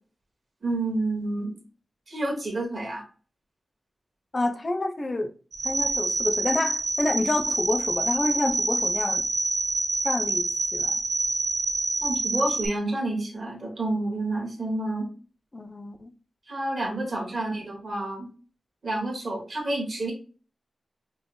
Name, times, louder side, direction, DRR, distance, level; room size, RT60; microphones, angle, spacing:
voice 1, 0.6-1.6 2.1-3.0 12.0-15.1 16.5-18.3 18.8-20.1, right 2 dB, 50° right, 1.3 m, -29 dB
voice 2, 4.3-5.3 5.6-9.3 10.0-10.5 10.7-11.0 15.5-16.1, left 2 dB, 35° left, 0.5 m, -28 dB
sound 1, 5.5-12.7, right 2 dB, 75° right, 1.8 m, -27 dB
5.2 x 2.0 x 3.1 m
wide cardioid pair, 100°, 0 cm